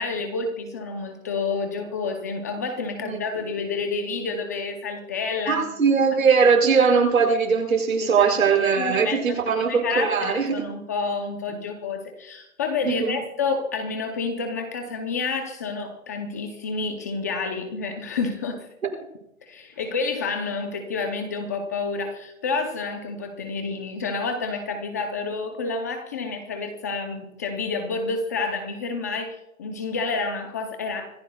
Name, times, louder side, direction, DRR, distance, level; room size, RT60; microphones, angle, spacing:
voice 1, 0.0-5.7 8.0-8.4 8.8-18.7 19.5-31.1, left 4 dB, 15° left, 5 dB, 0.5 m, -29 dB
voice 2, 5.5-10.5 12.9-13.2, right 5 dB, 75° right, 2 dB, 6.0 m, -20 dB
25.5 x 14.5 x 2.3 m, 0.87 s
hypercardioid pair, 155°, 42 cm